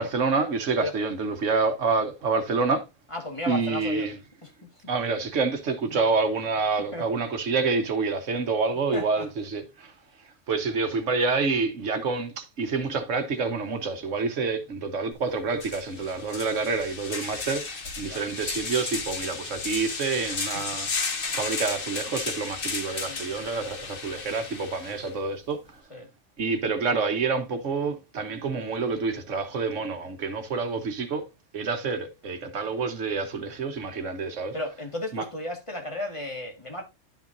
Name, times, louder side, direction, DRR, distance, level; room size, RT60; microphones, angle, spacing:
voice 1, 0.0-2.9 3.5-4.2 4.9-9.9 10.5-20.9 21.3-25.8 26.4-31.3 31.5-34.5 35.1-35.2, right 4 dB, 80° right, 1.4 m, -28 dB
voice 2, 3.1-4.1 4.4-4.5 6.9-7.1 8.9-9.3 18.0-18.2 23.1-23.3 25.9-26.1 34.5-36.8, left 1 dB, 25° left, 1.9 m, -34 dB
sound 1, 15.1-15.2 15.5-25.1, left 4 dB, 45° left, 1.4 m, -34 dB
11.0 x 5.8 x 2.6 m
omnidirectional pair, 1.3 m